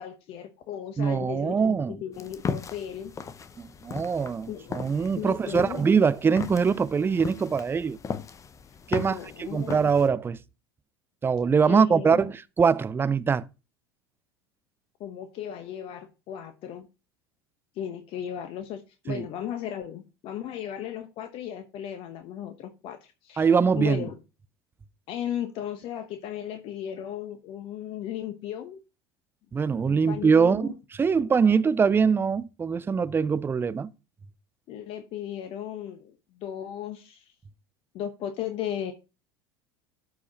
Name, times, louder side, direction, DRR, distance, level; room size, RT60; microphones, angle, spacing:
voice 1, 0.0-3.1 4.5-4.9 5.2-5.9 8.9-9.9 11.6-12.3 15.0-16.9 17.7-23.5 23.8-24.2 25.1-28.8 29.9-30.8 34.7-37.3 37.9-38.9, left 10 dB, 45° left, 1.0 m, -36 dB
voice 2, 1.0-1.9 3.6-8.0 8.9-10.4 11.2-13.4 19.1-19.2 23.4-24.1 29.5-30.7 31.0-33.9, right 6 dB, 20° right, 0.5 m, -23 dB
sound 1, 2.1-10.1, left 6 dB, 25° left, 0.7 m, -37 dB
12.5 x 4.8 x 2.9 m
figure-of-eight pair, 75°, 13 cm